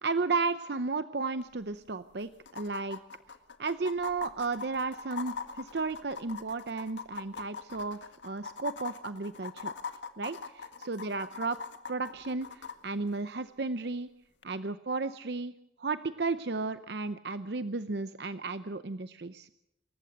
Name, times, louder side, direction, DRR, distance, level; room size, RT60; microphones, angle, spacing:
voice 1, 0.0-3.0 3.6-9.7 10.2-11.6 11.9-14.1 14.4-19.5, right 3 dB, 65° right, 12 dB, 0.7 m, -34 dB
sound 1, 1.4-1.5 1.7-1.8 2.5-12.8 14.4-14.5, left 6 dB, 80° left, 1.9 m, -41 dB
27.5 x 14.5 x 7.8 m, 0.81 s
head